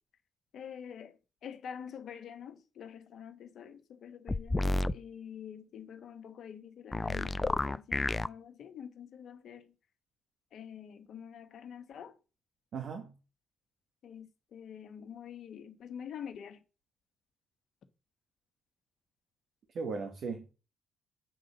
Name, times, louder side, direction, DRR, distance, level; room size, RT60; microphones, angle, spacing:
voice 1, 0.5-1.1 1.4-9.7 10.5-12.1 14.0-16.6, left 8 dB, 65° left, 1.3 m, -46 dB
sound 1, 4.3-4.9 6.9-8.3, left 2 dB, 20° left, 0.4 m, -30 dB
voice 2, 12.7-13.1 19.8-20.5, right 4 dB, 60° right, 1.7 m, -37 dB
9.3 x 4.0 x 6.7 m
cardioid pair, 90°, 0 cm